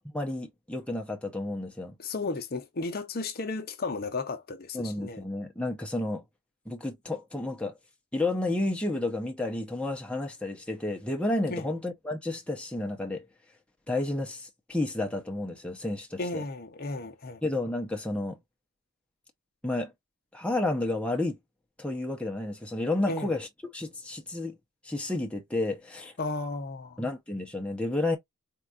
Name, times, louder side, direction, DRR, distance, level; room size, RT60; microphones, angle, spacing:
voice 1, 0.1-1.9 4.7-6.2 6.7-7.7 8.1-13.3 13.9-16.4 17.4-18.4 19.6-19.9 20.3-21.4 21.8-23.5 23.7-24.6 24.8-26.1 27.0-28.2, left 2 dB, 5° left, 0.7 m, -31 dB
voice 2, 2.0-5.2 11.5-11.7 16.2-17.4 23.1-23.3 26.2-27.0, left 3 dB, 45° left, 0.7 m, -34 dB
4.5 x 2.4 x 2.4 m
head